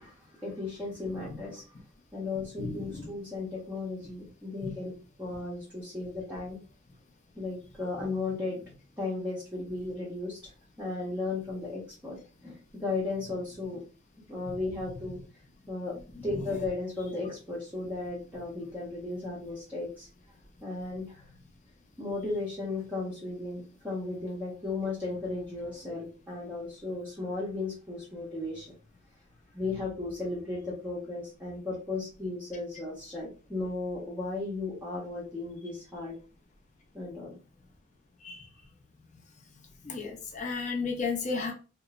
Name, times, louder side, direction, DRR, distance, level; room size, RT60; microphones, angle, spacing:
voice 1, 0.0-1.6 2.1-4.9 5.2-6.6 7.3-8.6 9.0-10.4 10.8-13.8 14.3-15.2 15.7-15.9 16.2-20.1 20.6-21.2 22.0-28.7 29.5-36.2 36.9-37.4, left 3 dB, 10° right, -7 dB, 0.6 m, -35 dB
voice 2, 2.6-3.1 4.6-4.7 16.4-16.5 38.2-38.5 39.8-41.5, left 4 dB, 35° left, 2 dB, 0.5 m, -33 dB
3.0 x 2.0 x 2.3 m, 0.35 s
head